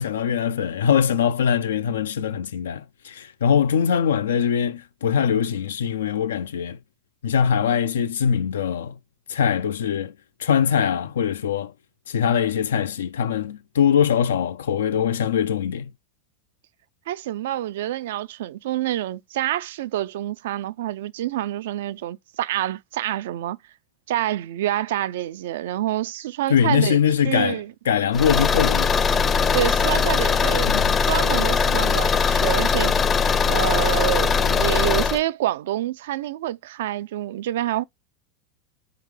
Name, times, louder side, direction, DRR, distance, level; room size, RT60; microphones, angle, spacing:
voice 1, 0.0-6.8 7.2-8.9 9.3-10.1 10.4-11.7 12.1-15.9 26.5-27.6 27.9-29.0 30.7-30.9, left 8 dB, 85° left, 0.3 m, -22 dB
voice 2, 17.1-23.6 24.1-27.0 27.2-27.7 29.5-30.8 31.1-33.0 33.5-37.8, right 13 dB, 75° right, 0.3 m, -27 dB
Car / Engine, 28.1-35.2, left 5 dB, 25° left, 0.5 m, -20 dB
3.6 x 3.4 x 3.2 m
hypercardioid pair, 105°, 0 cm